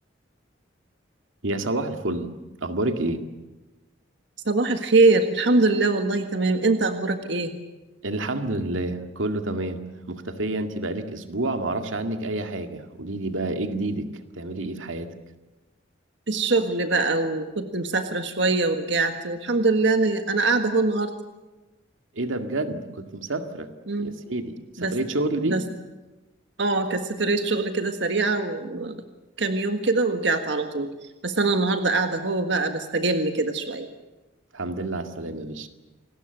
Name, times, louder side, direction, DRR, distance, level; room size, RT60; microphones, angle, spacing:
voice 1, 1.4-2.3 2.6-3.2 8.0-14.1 14.4-15.1 22.2-23.7 24.0-25.6 34.5-35.7, right 2 dB, 90° right, 6 dB, 2.1 m, -29 dB
voice 2, 4.4-7.5 16.3-21.1 23.9-24.1 24.8-24.9 25.5-25.6 26.6-29.0 29.4-30.9 31.2-33.9, right 3 dB, 65° right, 7 dB, 1.7 m, -23 dB
28.5 x 20.0 x 8.0 m, 1.1 s
head